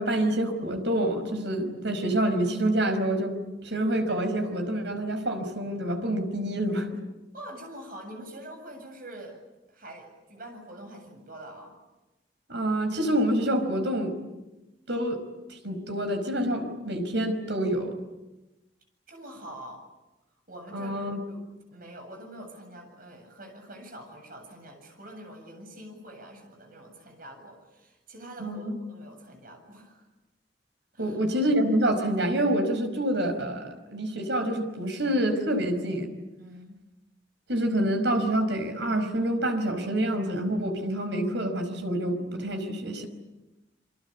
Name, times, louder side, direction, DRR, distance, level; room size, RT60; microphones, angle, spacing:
voice 1, 0.0-3.4 3.6-6.9 12.5-14.2 14.9-15.2 15.5-17.9 20.7-21.2 28.4-28.8 31.0-36.1 37.5-43.1, right 1 dB, 75° right, 7 dB, 5.1 m, -27 dB
voice 2, 7.3-9.4 9.7-11.7 19.1-19.8 20.5-21.0 21.3-30.0 30.9-31.2 36.4-36.8, right 1 dB, 50° right, 4 dB, 7.7 m, -45 dB
28.0 x 24.0 x 8.5 m, 1.0 s
head